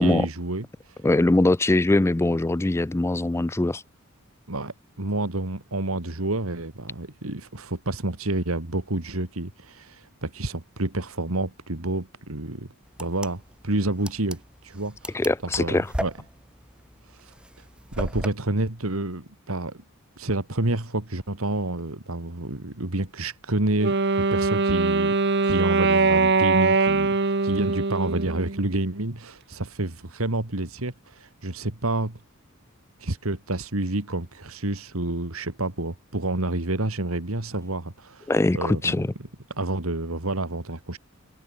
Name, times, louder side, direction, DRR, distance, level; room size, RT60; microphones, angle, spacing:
voice 1, 0.0-1.0 4.5-12.7 13.0-15.2 15.6-16.1 17.1-17.7 17.9-19.8 20.2-25.2 25.4-32.2 33.0-39.1 39.6-41.0, right 2 dB, 80° right, 2.3 m, -29 dB
voice 2, 1.0-3.8 15.1-15.9 38.3-39.1, left 2 dB, 10° left, 0.4 m, -22 dB
sound 1, 12.9-18.3, equal, 5° right, 3.0 m, -35 dB
Wind instrument woodwind instrument, 23.8-28.9, right 3 dB, 55° right, 1.3 m, -22 dB
head